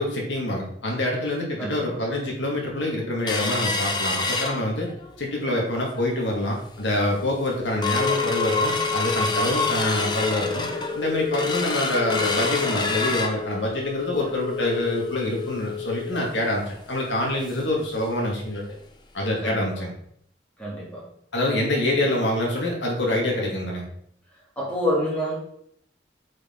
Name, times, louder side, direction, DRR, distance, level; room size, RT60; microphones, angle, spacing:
voice 1, 0.0-4.9 5.2-10.7 11.0-18.6 19.1-19.9 21.3-23.8, left 1 dB, 90° left, -1 dB, 2.1 m, -26 dB
voice 2, 1.6-2.0 19.4-19.7 20.6-21.1 24.6-25.4, left 1 dB, 5° left, -7 dB, 2.8 m, -27 dB
sound 1, 3.3-5.1 5.5-5.6 6.0-6.3 6.8-6.9 7.3-17.8 18.1-18.2 18.6-18.8 19.3-19.4, left 4 dB, 25° left, 0.7 m, -27 dB
8.1 x 5.2 x 3.8 m, 0.68 s
head